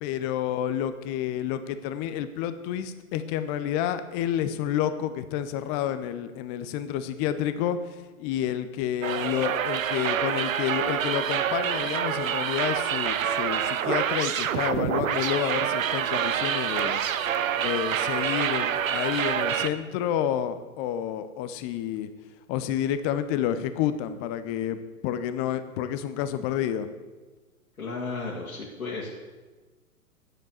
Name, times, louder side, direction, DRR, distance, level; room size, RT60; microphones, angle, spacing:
voice 1, 0.0-17.0 17.5-22.1 22.5-26.9, left 10 dB, 25° left, 12 dB, 0.7 m, -29 dB
sound 1, 9.0-19.7, right 9 dB, 65° right, 0.7 m, -27 dB
voice 2, 27.8-29.2, left 3 dB, 80° left, -4 dB, 2.2 m, -34 dB
9.4 x 7.6 x 7.1 m, 1.3 s
figure-of-eight pair, 105°, 43 cm